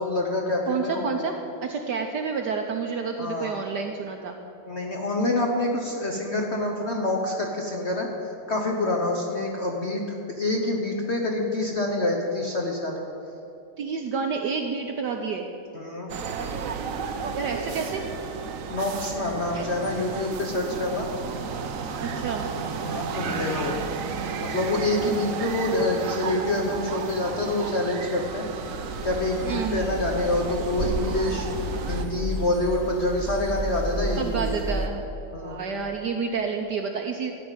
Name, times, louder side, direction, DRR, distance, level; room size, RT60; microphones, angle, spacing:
voice 1, 0.0-1.2 3.2-3.6 4.6-10.0 10.3-13.0 15.7-16.1 18.7-21.4 22.9-23.8 24.3-34.7 35.3-35.6, left 2 dB, 50° left, 0 dB, 0.8 m, -27 dB
voice 2, 0.7-4.4 13.8-15.5 17.3-18.0 19.5-19.7 22.0-22.5 29.4-29.9 34.2-35.0 35.4-37.3, right 5 dB, 70° right, 3 dB, 1.0 m, -29 dB
sound 1, 16.1-32.1, right 5 dB, 85° right, 0.7 m, -33 dB
sound 2, 28.6-34.9, right 2 dB, 45° right, 0.6 m, -32 dB
14.0 x 5.4 x 8.9 m, 2.8 s
omnidirectional pair, 2.4 m